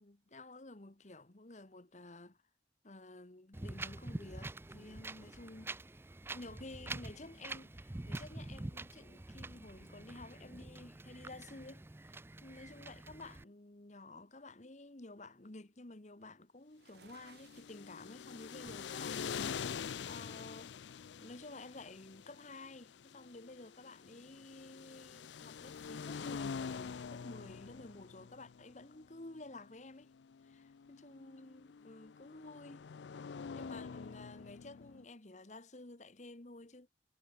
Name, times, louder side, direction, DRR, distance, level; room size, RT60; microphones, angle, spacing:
voice 1, 0.0-2.4 2.8-5.7 6.3-30.1 30.4-32.9 33.5-36.9, left 2 dB, 40° left, 1.3 m, -52 dB
Wind, 3.5-13.4, right 2 dB, 15° right, 0.4 m, -46 dB
sound 1, 16.7-17.8 18.7-18.9 19.6-20.6, right 4 dB, 65° right, 1.0 m, -61 dB
sound 2, 17.1-35.0, left 6 dB, 90° left, 0.5 m, -46 dB
head